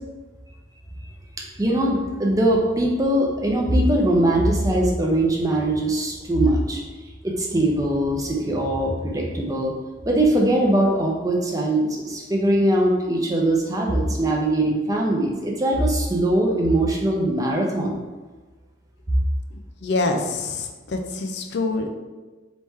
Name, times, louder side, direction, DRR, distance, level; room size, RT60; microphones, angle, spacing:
voice 1, 1.6-6.8 7.2-9.7 10.0-18.0, right 1 dB, 20° right, -1 dB, 0.5 m, -21 dB
voice 2, 19.8-21.9, left 3 dB, 65° left, 4 dB, 0.5 m, -25 dB
4.2 x 3.0 x 3.5 m, 1.3 s
head